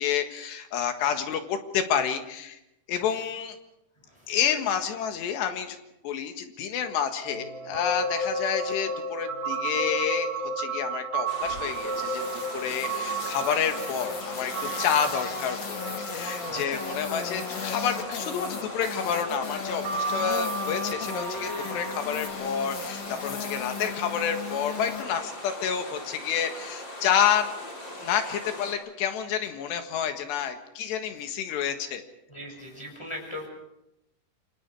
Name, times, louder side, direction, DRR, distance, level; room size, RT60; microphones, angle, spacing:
voice 1, 0.0-2.6 2.9-3.6 4.3-5.8 6.0-10.3 10.6-27.5 28.0-32.0, left 8 dB, 85° left, 6 dB, 3.8 m, -29 dB
voice 2, 4.0-4.4 16.2-17.0 32.3-33.5, left 1 dB, 5° left, 1 dB, 6.2 m, -40 dB
sound 1, 7.2-19.0 19.7-22.3, right 3 dB, 45° right, 3.7 m, -33 dB
sound 2, 11.3-28.7, left 1 dB, 25° left, 4.5 m, -40 dB
sound 3, 11.4-25.0, left 6 dB, 60° left, 1.2 m, -37 dB
28.5 x 24.5 x 4.9 m, 0.88 s
omnidirectional pair, 4.8 m